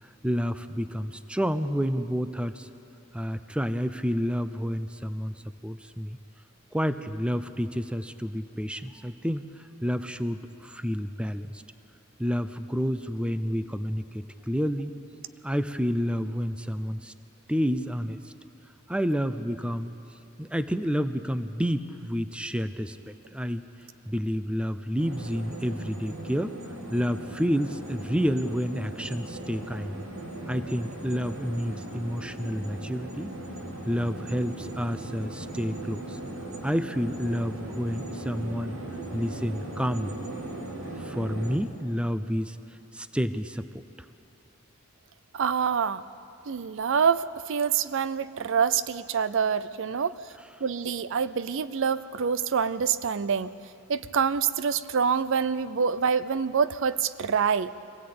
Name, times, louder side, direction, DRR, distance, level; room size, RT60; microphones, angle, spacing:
voice 1, 0.2-2.7 3.1-6.2 6.7-9.4 9.8-11.5 12.2-14.9 15.4-17.1 17.5-18.2 18.9-19.9 20.4-23.6 24.1-26.5 26.9-29.9 30.5-33.3 33.9-36.2 36.6-38.8 39.1-40.2 41.0-42.6 42.9-43.6, equal, 5° right, 11 dB, 0.6 m, -29 dB
sound 1, 25.0-41.6, right 1 dB, 85° right, 2.8 m, -38 dB
voice 2, 45.3-46.0 46.5-50.2 50.6-53.5 53.9-57.7, right 6 dB, 65° right, 15 dB, 0.5 m, -26 dB
24.0 x 17.0 x 8.6 m, 2.7 s
head